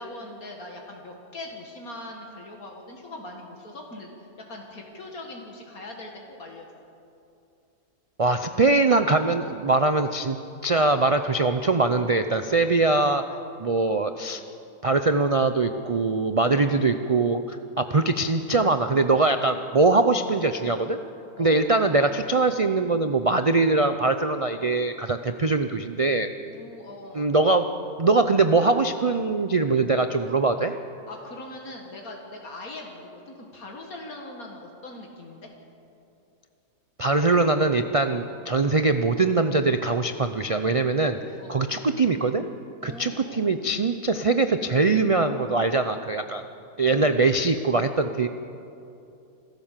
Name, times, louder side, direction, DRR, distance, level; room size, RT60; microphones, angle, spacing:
voice 1, 0.0-6.7 21.4-21.6 26.4-27.3 31.1-35.5 41.4-41.6 42.8-43.6 46.9-47.4, left 2 dB, 70° left, 1 dB, 2.3 m, -41 dB
voice 2, 8.2-10.4 10.6-13.2 13.6-14.4 14.8-21.0 21.4-26.3 27.2-27.7 28.0-30.7 37.0-41.2 41.5-42.5 42.8-46.4 46.8-48.3, right 3 dB, 55° right, 8 dB, 0.3 m, -22 dB
26.5 x 13.5 x 7.5 m, 2.7 s
omnidirectional pair, 1.6 m